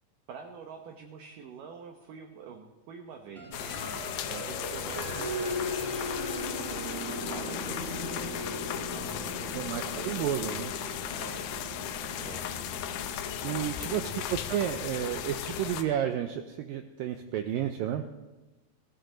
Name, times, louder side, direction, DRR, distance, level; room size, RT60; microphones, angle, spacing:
voice 1, 0.3-6.5 7.3-11.6 12.2-12.6 13.4-14.9, right 6 dB, 70° right, 4 dB, 2.2 m, -47 dB
sound 1, 3.4-15.9, equal, 20° right, 2.4 m, -39 dB
sound 2, 3.5-15.8, left 10 dB, 80° left, 2.9 m, -36 dB
voice 2, 9.5-10.7 13.4-18.0, right 10 dB, 90° right, 7 dB, 2.0 m, -31 dB
20.5 x 15.5 x 3.9 m, 1.1 s
omnidirectional pair, 4.9 m